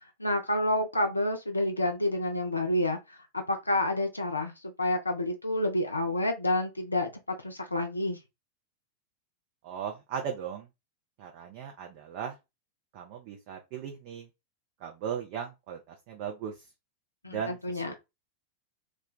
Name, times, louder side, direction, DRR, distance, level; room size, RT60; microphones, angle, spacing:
voice 1, 0.2-8.2 17.2-17.9, left 1 dB, 80° left, 0.5 m, -29 dB
voice 2, 9.6-10.7 11.2-12.4 12.9-14.3 14.8-16.5 17.3-17.9, right 8 dB, 45° right, 0.6 m, -37 dB
2.4 x 2.2 x 3.7 m
figure-of-eight pair, 90°, 0 cm